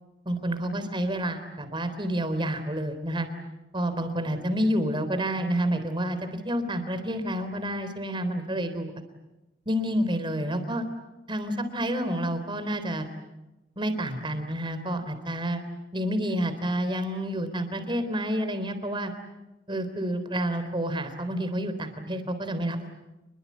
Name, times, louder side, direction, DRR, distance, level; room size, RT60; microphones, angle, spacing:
voice 1, 0.3-3.3 3.7-8.9 9.7-10.9 11.3-13.1 13.8-15.6 15.9-19.1 19.7-22.8, equal, 30° right, 9 dB, 3.6 m, -29 dB
28.0 x 22.5 x 8.5 m, 1.0 s
head